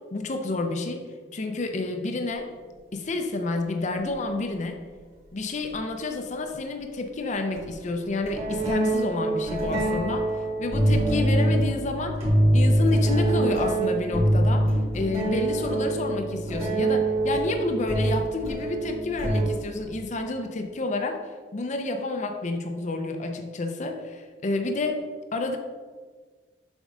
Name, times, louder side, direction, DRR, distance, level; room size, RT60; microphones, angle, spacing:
voice 1, 0.1-1.0 1.3-2.5 2.9-4.8 5.3-10.3 10.6-12.3 12.5-21.2 21.5-25.0 25.3-25.6, left 2 dB, 45° left, 5 dB, 0.6 m, -29 dB
sound 1, 4.1-4.2 5.7-5.8 7.5-7.7 8.2-19.8, right 1 dB, 35° right, 2.2 m, -24 dB
7.1 x 5.2 x 3.8 m, 1.5 s
head